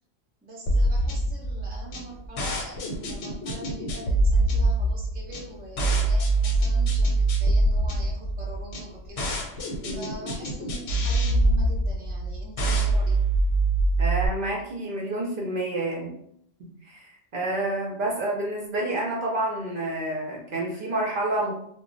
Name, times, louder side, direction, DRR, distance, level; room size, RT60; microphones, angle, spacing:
voice 1, 0.4-9.5 10.0-13.2, right 1 dB, 15° right, -3 dB, 0.3 m, -43 dB
sound 1, 0.7-14.3, right 2 dB, 80° left, 1.0 m, -24 dB
voice 2, 14.0-16.1 16.6-21.5, right 1 dB, 60° right, -2 dB, 0.6 m, -29 dB
2.1 x 2.0 x 3.7 m, 0.71 s
omnidirectional pair, 1.2 m